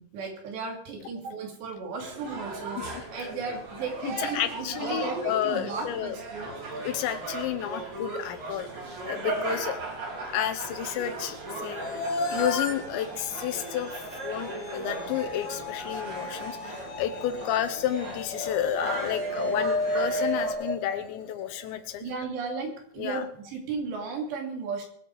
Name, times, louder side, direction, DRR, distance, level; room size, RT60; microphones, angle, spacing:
voice 1, 0.0-6.5 22.0-24.8, right 4 dB, 75° right, 1 dB, 4.8 m, -35 dB
sound 1, 2.0-20.5, right 2 dB, 55° right, 4.9 m, -37 dB
voice 2, 4.0-6.2 6.8-9.8 10.3-22.0 23.0-23.3, left 10 dB, 90° left, 9 dB, 3.5 m, -31 dB
sound 2, 11.6-21.8, left 2 dB, 60° left, 3.2 m, -33 dB
22.5 x 8.0 x 4.8 m, 0.65 s
omnidirectional pair, 5.0 m